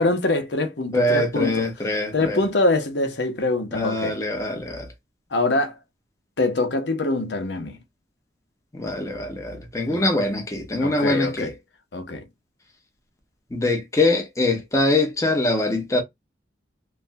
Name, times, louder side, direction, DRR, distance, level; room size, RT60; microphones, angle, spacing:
voice 1, 0.0-1.7 2.1-4.1 5.3-5.8 6.4-7.8 9.9-10.1 10.8-11.5 11.9-12.3, left 2 dB, 70° left, 0.8 m, -24 dB
voice 2, 0.9-2.4 3.7-4.9 8.7-11.5 13.5-16.0, left 2 dB, 15° left, 0.8 m, -23 dB
3.3 x 2.2 x 2.5 m
head